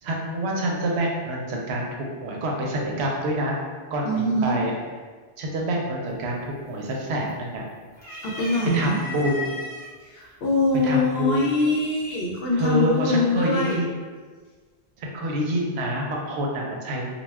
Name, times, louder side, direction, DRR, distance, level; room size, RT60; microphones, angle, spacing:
voice 1, 0.0-3.5 3.9-4.7 5.4-7.7 8.7-9.6 10.2-10.3 10.8-11.5 12.5-13.9 15.0-17.1, right 1 dB, 75° right, -1 dB, 0.9 m, -27 dB
voice 2, 4.0-4.6 8.2-9.0 10.1-13.8, left 2 dB, 65° left, -3 dB, 0.7 m, -23 dB
sound 1, 6.1-6.5 6.8-7.5 7.9-9.9 10.7-10.8 12.1-12.5, left 2 dB, 5° left, 0.8 m, -36 dB
2.2 x 2.2 x 3.2 m, 1.5 s
omnidirectional pair, 1.1 m